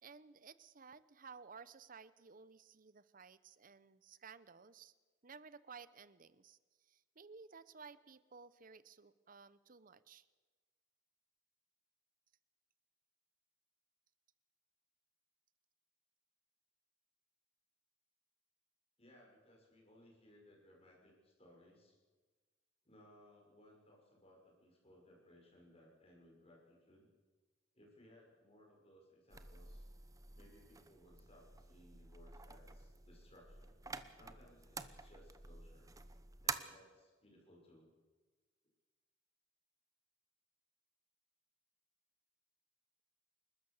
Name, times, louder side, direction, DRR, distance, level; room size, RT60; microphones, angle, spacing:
voice 1, 0.0-4.9 5.2-6.6 6.8-10.3, right 5 dB, 45° right, 16 dB, 0.8 m, -56 dB
voice 2, 19.0-22.0 22.8-27.1 27.7-29.9 30.4-33.8 34.1-36.0 36.4-37.9, left 1 dB, 30° left, -1 dB, 6.1 m, -64 dB
sound 1, 29.3-36.6, right 4 dB, 15° right, 0.9 m, -48 dB
30.0 x 13.5 x 7.1 m, 1.3 s
head